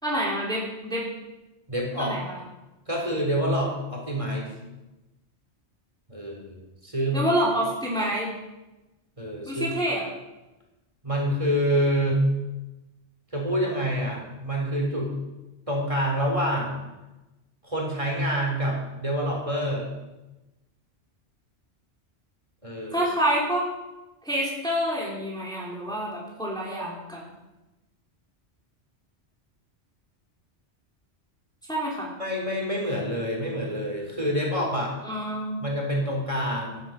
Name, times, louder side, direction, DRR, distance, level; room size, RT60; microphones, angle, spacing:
voice 1, 0.0-1.0 2.0-2.4 7.1-8.3 9.5-10.0 22.9-23.7 24.2-27.2 31.7-32.1 35.0-35.6, equal, 5° left, -4 dB, 3.1 m, -27 dB
voice 2, 1.7-2.2 2.9-4.5 6.1-7.3 9.2-9.7 11.0-12.2 13.3-15.1 15.7-16.8 17.6-19.9 22.6-23.1 32.2-35.0 35.6-36.8, equal, 30° right, -1 dB, 3.8 m, -27 dB
14.5 x 11.0 x 6.4 m, 1.0 s
omnidirectional pair, 1.2 m